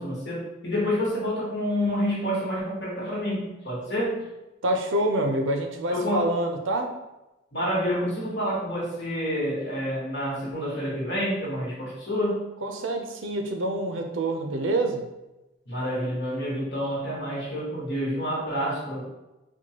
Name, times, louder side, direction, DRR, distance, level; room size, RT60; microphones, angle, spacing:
voice 1, 0.0-4.2 5.9-6.3 7.5-12.4 15.7-19.0, equal, 60° left, -5 dB, 1.2 m, -28 dB
voice 2, 4.6-6.9 12.6-15.0, right 1 dB, 85° right, 3 dB, 0.5 m, -26 dB
4.5 x 2.2 x 2.8 m, 0.99 s
head